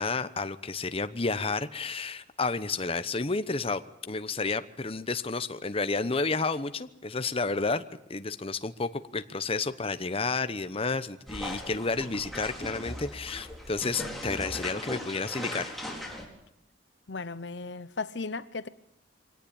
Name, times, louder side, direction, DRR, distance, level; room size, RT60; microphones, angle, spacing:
voice 1, 0.0-7.8 8.1-15.7, left 3 dB, 30° left, 1.0 m, -31 dB
sound 1, 11.3-16.3, left 1 dB, ahead, 4.3 m, -38 dB
voice 2, 17.1-18.7, left 4 dB, 70° left, 0.9 m, -36 dB
23.5 x 18.5 x 8.9 m
head